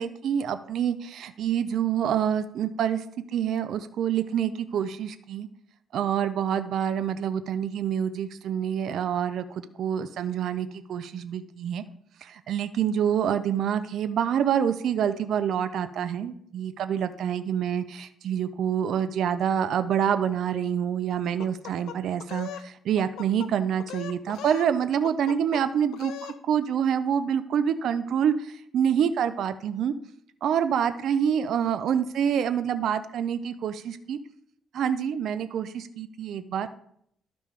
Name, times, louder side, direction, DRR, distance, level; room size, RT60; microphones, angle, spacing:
voice 1, 0.0-3.0 3.3-5.5 5.9-11.8 12.2-29.9 30.4-34.2 34.7-36.7, right 8 dB, 70° right, 11 dB, 0.5 m, -27 dB
sound 1, 21.4-22.7 23.0-23.5 23.8-24.7 25.0-25.6 25.9-26.4, left 10 dB, 85° left, 0.5 m, -39 dB
12.0 x 5.1 x 3.3 m, 0.68 s
cardioid pair, 90°, 0 cm